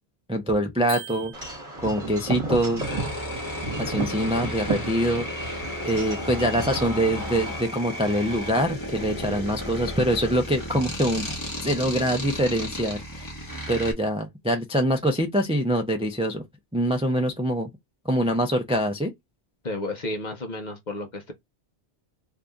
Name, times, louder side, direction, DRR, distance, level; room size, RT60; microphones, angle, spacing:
voice 1, 0.3-1.3 1.8-2.8 3.8-5.3 5.8-11.3 11.6-13.3 13.7-16.4 16.7-17.7 18.0-19.1, equal, 10° right, 0.3 m, -24 dB
sound 1, 0.9-2.0, right 9 dB, 50° right, 0.7 m, -40 dB
Wind chime / Wind, 1.3-7.6, right 2 dB, 30° right, 1.3 m, -33 dB
sound 2, 2.8-13.9, left 1 dB, 20° left, 1.1 m, -34 dB
voice 2, 9.1-9.5 19.6-21.3, left 2 dB, 45° left, 0.8 m, -33 dB
2.8 x 2.5 x 3.5 m
omnidirectional pair, 1.1 m